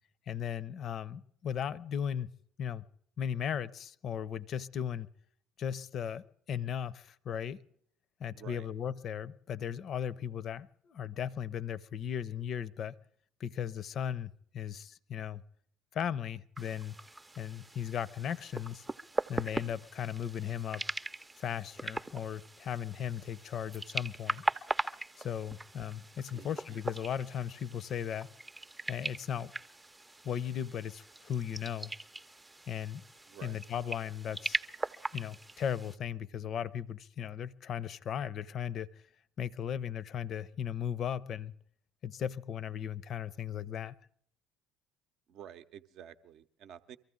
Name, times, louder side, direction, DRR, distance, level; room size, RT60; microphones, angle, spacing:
voice 1, 0.3-2.3 2.6-2.8 3.2-5.1 5.6-7.6 8.2-12.9 13.4-15.4 15.9-16.9 17.4-18.9 19.3-20.8 21.4-24.4 25.2-28.3 28.9-29.5 30.2-31.9 32.7-33.0 33.4-34.6 35.1-38.9 39.4-41.5 42.0-43.9, left 9 dB, 50° left, 0.5 m, -37 dB
voice 2, 8.3-8.7 26.3-26.8 33.3-33.6 45.3-47.0, right 9 dB, 60° right, 0.6 m, -50 dB
sound 1, 16.6-36.0, right 2 dB, 15° right, 0.5 m, -40 dB
23.5 x 14.5 x 3.8 m
hypercardioid pair, 60°, 0 cm